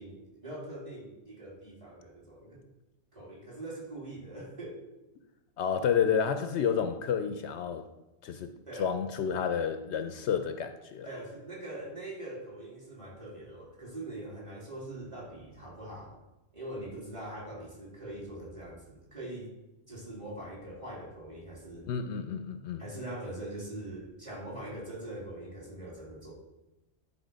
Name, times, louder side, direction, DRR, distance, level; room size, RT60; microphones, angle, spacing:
voice 1, 0.0-2.7 3.1-4.8 8.7-8.9 11.0-16.2 16.5-19.5 19.9-21.9 22.8-26.3, right 1 dB, 25° right, -3 dB, 2.5 m, -42 dB
voice 2, 5.6-7.9 8.2-8.5 8.8-11.1 21.9-22.8, left 7 dB, 70° left, 9 dB, 0.8 m, -30 dB
10.0 x 4.1 x 5.2 m, 0.99 s
omnidirectional pair, 1.2 m